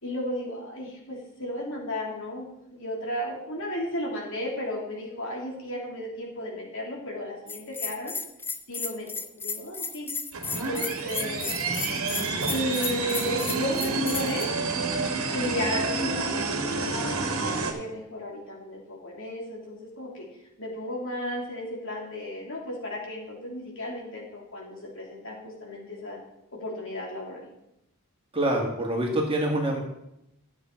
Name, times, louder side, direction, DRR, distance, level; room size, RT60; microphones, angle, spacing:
voice 1, 0.0-8.2 8.7-9.1 9.3-10.1 10.6-11.5 12.5-14.5 15.3-20.3 20.6-26.2 26.6-27.5, left 1 dB, 60° left, -2 dB, 2.9 m, -34 dB
Bell, 7.5-14.4, left 4 dB, 10° left, 0.3 m, -34 dB
sound 1, 10.3-17.7, right 3 dB, 70° right, 1.5 m, -29 dB
voice 2, 28.3-29.8, right 1 dB, 25° right, 0 dB, 1.8 m, -25 dB
12.5 x 7.5 x 4.5 m, 0.84 s
head